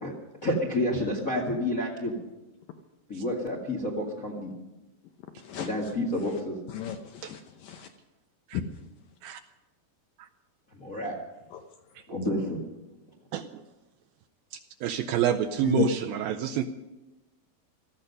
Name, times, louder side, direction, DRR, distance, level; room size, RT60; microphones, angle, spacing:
voice 1, 0.4-2.1 3.1-4.5 5.5-6.6 10.7-11.1 12.1-12.6, left 1 dB, 45° left, -1 dB, 1.0 m, -29 dB
voice 2, 6.7-7.9 8.5-8.7 15.6-15.9, left 10 dB, 75° left, 5 dB, 2.1 m, -32 dB
voice 3, 14.8-16.7, right 9 dB, 80° right, 6 dB, 2.2 m, -27 dB
18.0 x 14.0 x 5.4 m, 1.0 s
omnidirectional pair, 4.8 m